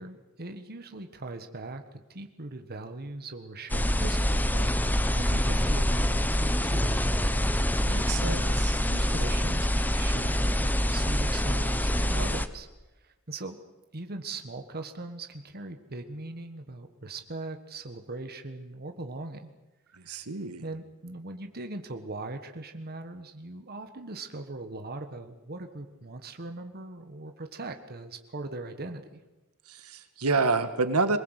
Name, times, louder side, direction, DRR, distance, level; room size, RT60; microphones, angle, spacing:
voice 1, 0.0-7.5 8.2-8.4 8.9-12.7 13.0-13.6 13.9-19.5 20.6-29.2, right 2 dB, 45° right, 6 dB, 1.5 m, -40 dB
sound 1, 3.7-12.5, equal, 10° left, 0.9 m, -26 dB
voice 2, 7.8-8.5 19.9-20.7 29.7-31.2, right 3 dB, 75° right, 9 dB, 1.8 m, -28 dB
22.5 x 20.5 x 8.2 m, 1.1 s
head